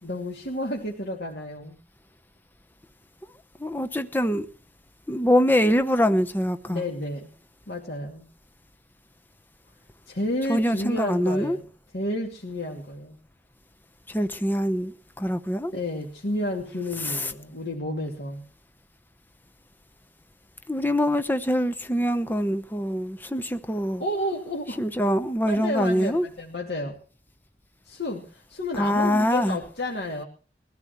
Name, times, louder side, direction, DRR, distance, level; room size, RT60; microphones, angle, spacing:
voice 1, 0.0-1.7 6.6-7.3 7.7-8.2 10.1-11.7 11.9-13.2 15.7-18.5 24.0-24.8 25.5-27.0 27.8-30.2, left 1 dB, 75° left, 2.6 m, -31 dB
voice 2, 3.6-4.5 5.1-6.8 10.5-11.6 14.1-15.7 20.7-24.0 24.8-26.2 28.8-29.6, equal, 10° left, 0.8 m, -24 dB
22.0 x 14.5 x 3.1 m
head